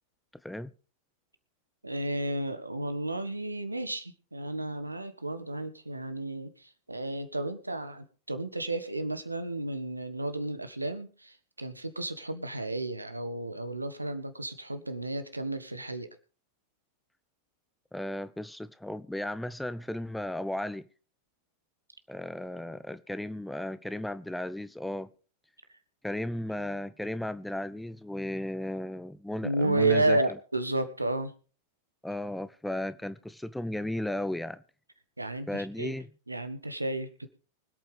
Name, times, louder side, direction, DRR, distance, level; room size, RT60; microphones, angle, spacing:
voice 1, 1.8-16.1 29.4-31.3 35.2-35.9 36.3-37.3, right 2 dB, 85° right, 1.5 m, -32 dB
voice 2, 17.9-20.8 22.1-25.1 26.0-30.2 32.0-34.6 35.5-36.1, left 1 dB, 5° left, 0.7 m, -35 dB
24.5 x 8.8 x 3.4 m
figure-of-eight pair, 90°, 0 cm